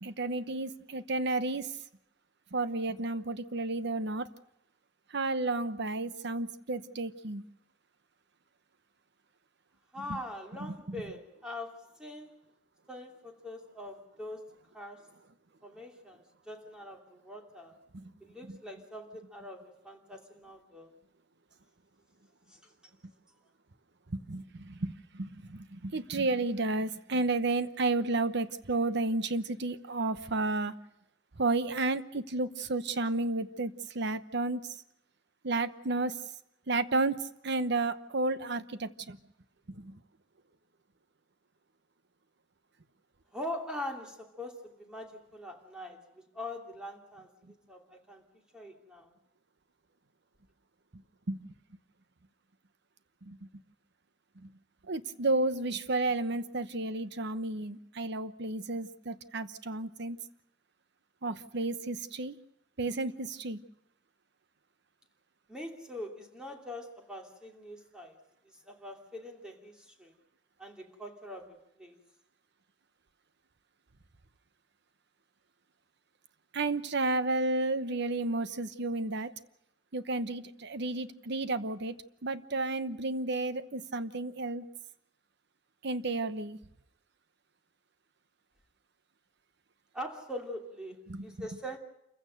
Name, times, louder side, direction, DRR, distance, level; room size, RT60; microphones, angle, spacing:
voice 1, 0.0-1.7 2.5-4.3 5.1-7.4 10.0-10.2 10.6-11.0 17.9-18.1 18.4-18.6 24.1-30.7 31.4-34.6 35.4-36.2 36.7-39.2 39.7-40.0 51.3-51.5 53.2-53.5 54.4-54.5 54.9-60.2 61.2-62.4 62.8-63.6 76.5-79.3 79.9-82.0 82.2-84.7 85.8-86.6 91.1-91.4, right 2 dB, 60° right, 13 dB, 1.0 m, -32 dB
voice 2, 9.9-12.3 12.9-14.5 14.7-15.0 15.6-17.7 18.2-20.9 43.3-46.0 46.3-47.3 47.7-48.2 48.5-49.1 65.5-68.2 68.7-70.1 70.6-72.0 89.9-91.8, left 1 dB, 5° right, 1 dB, 2.9 m, -43 dB
28.0 x 15.5 x 6.5 m, 0.86 s
head